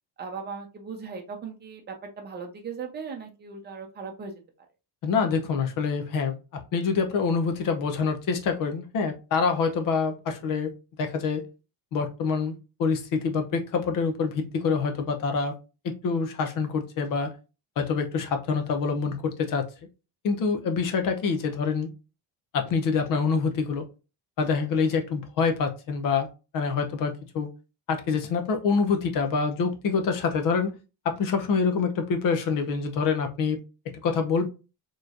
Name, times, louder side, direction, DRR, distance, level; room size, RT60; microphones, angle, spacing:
voice 1, 0.2-4.3, right 5 dB, 25° right, 2 dB, 0.8 m, -38 dB
voice 2, 5.0-6.3 6.7-10.7 11.0-11.4 11.9-15.5 15.8-17.3 17.8-19.7 20.2-21.9 22.5-23.8 24.4-26.3 26.5-27.5 27.9-30.7 31.0-33.6 34.0-34.5, left 5 dB, 50° left, 5 dB, 0.7 m, -26 dB
4.4 x 3.1 x 2.5 m, 0.30 s
cardioid pair, 175°, 42 cm